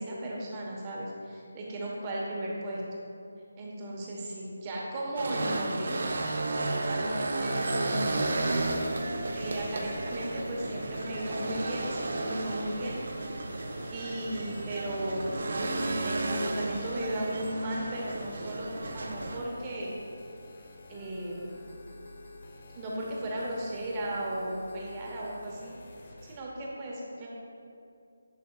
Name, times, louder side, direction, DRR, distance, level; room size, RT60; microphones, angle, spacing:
voice 1, 0.0-2.8 3.6-6.0 6.7-8.8 9.3-13.0 13.9-19.9 20.9-21.5 22.7-25.7 26.2-27.3, right 1 dB, 20° right, -4 dB, 1.2 m, -36 dB
sound 1, 5.2-19.4, right 2 dB, 60° right, 0.7 m, -33 dB
sound 2, 7.5-26.4, left 2 dB, 40° left, 0.8 m, -50 dB
10.5 x 5.4 x 2.4 m, 2.5 s
figure-of-eight pair, 165°, 0 cm